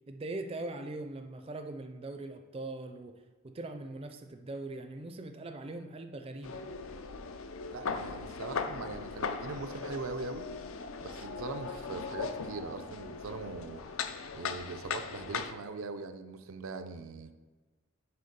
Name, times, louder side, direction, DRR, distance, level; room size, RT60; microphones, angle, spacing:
voice 1, 0.1-3.1 3.4-6.6, right 2 dB, 25° right, 6 dB, 0.4 m, -41 dB
sound 1, 6.4-15.5, left 5 dB, 75° left, 0.5 m, -39 dB
voice 2, 7.7-10.5 11.0-13.8 14.3-17.3, right 3 dB, 85° right, 8 dB, 0.5 m, -41 dB
6.7 x 4.5 x 5.2 m, 1.3 s
head